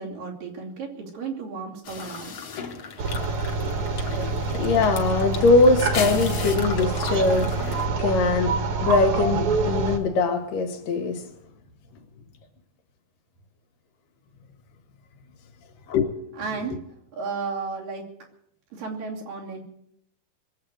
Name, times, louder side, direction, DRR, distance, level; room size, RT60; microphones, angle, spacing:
voice 1, 0.0-2.4 16.3-18.1 18.7-19.6, right 4 dB, 85° right, 4.6 m, -33 dB
sound 1, 1.8-7.9, left 6 dB, 50° left, 1.8 m, -35 dB
sound 2, 3.0-10.0, right 3 dB, 60° right, 2.6 m, -26 dB
voice 2, 4.1-7.6 8.0-11.3 15.9-16.1, left 3 dB, 80° left, 3.4 m, -22 dB
22.0 x 7.8 x 8.1 m
omnidirectional pair, 3.8 m